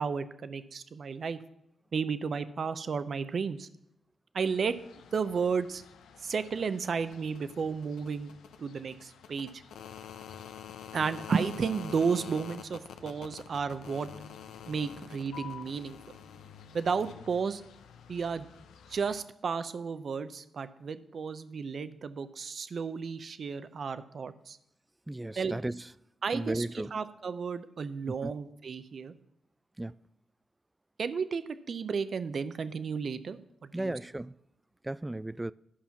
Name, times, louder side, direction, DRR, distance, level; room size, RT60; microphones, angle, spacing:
voice 1, 0.0-1.4 1.9-3.7 4.3-4.8 5.1-5.8 6.2-8.3 8.6-9.5 10.9-14.1 14.7-16.0 16.7-17.6 18.1-18.5 18.9-24.6 25.4-25.5 26.2-29.1 31.0-31.4 31.7-34.0, right 5 dB, 60° right, 0.6 m, -33 dB
sound 1, 4.4-19.2, left 8 dB, 90° left, 0.7 m, -48 dB
voice 2, 25.1-25.8 26.3-26.9 28.2-28.3 29.8-29.9 33.7-34.3 34.8-35.5, right 1 dB, 15° right, 0.3 m, -35 dB
11.5 x 5.5 x 5.8 m
cardioid pair, 60°, 0 cm